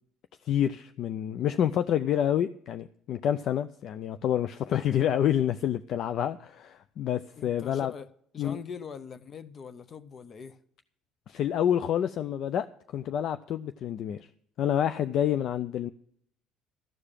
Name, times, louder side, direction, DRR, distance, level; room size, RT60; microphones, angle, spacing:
voice 1, 0.4-7.9 8.4-8.6 11.3-12.7 12.9-14.3 14.6-15.9, left 10 dB, 60° left, 0.4 m, -28 dB
voice 2, 7.4-8.1 8.3-10.6, left 6 dB, 45° left, 0.8 m, -42 dB
13.5 x 4.9 x 8.8 m
hypercardioid pair, 70°, 0 cm